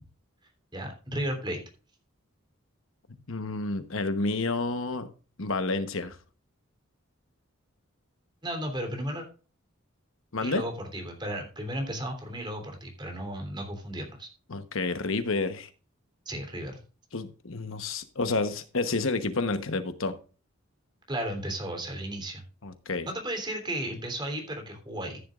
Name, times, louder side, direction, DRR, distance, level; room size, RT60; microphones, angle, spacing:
voice 1, 0.7-1.6 8.4-9.3 10.4-14.3 16.2-16.8 21.1-22.4 23.1-25.2, right 1 dB, 20° right, 3 dB, 3.3 m, -34 dB
voice 2, 3.1-5.1 5.4-6.2 10.3-10.6 14.5-15.7 17.1-20.1 22.6-23.1, left 3 dB, 70° left, 9 dB, 1.1 m, -30 dB
14.5 x 10.5 x 2.5 m, 0.36 s
head